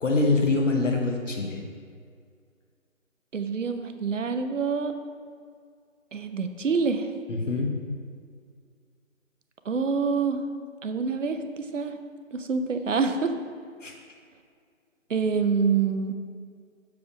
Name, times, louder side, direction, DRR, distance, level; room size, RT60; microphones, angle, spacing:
voice 1, 0.0-1.7 7.3-7.8 13.8-13.9, left 3 dB, 65° left, 1 dB, 1.0 m, -24 dB
voice 2, 3.3-4.9 6.1-7.1 9.7-10.4 10.8-12.0 12.3-13.3 15.1-16.1, right 5 dB, 65° right, 8 dB, 0.7 m, -26 dB
7.1 x 4.9 x 5.1 m, 2.1 s
figure-of-eight pair, 170°, 40 cm